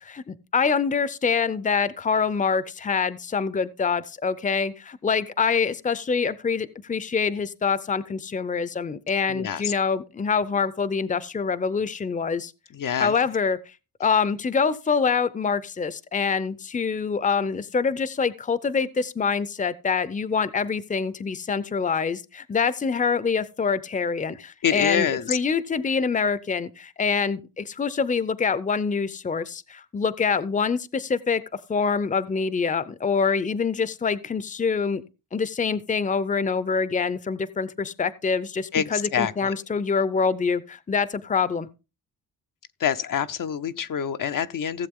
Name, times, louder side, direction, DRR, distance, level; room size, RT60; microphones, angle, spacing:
voice 1, 0.0-12.5 13.0-13.6 14.0-31.4 31.7-35.0 35.3-41.7, left 5 dB, 25° left, 0.6 m, -25 dB
voice 2, 9.3-9.7 12.7-13.1 24.6-25.4 38.7-39.5 42.8-44.9, left 8 dB, 70° left, 0.7 m, -26 dB
16.5 x 7.4 x 3.6 m
wide cardioid pair, 110°, 34 cm